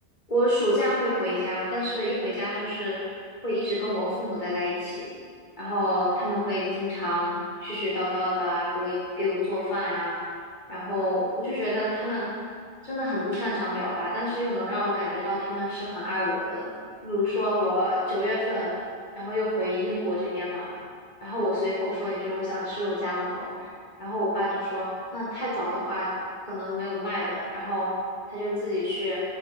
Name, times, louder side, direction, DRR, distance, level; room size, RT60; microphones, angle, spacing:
voice 1, 0.3-3.0 3.4-5.1 5.6-10.1 10.7-12.3 12.8-16.7 17.0-18.7 19.1-20.7 21.2-23.7 24.0-26.1 26.5-27.9 28.3-29.2, left 1 dB, 45° left, -9 dB, 1.6 m, -28 dB
7.9 x 7.1 x 4.1 m, 2.1 s
omnidirectional pair, 1.2 m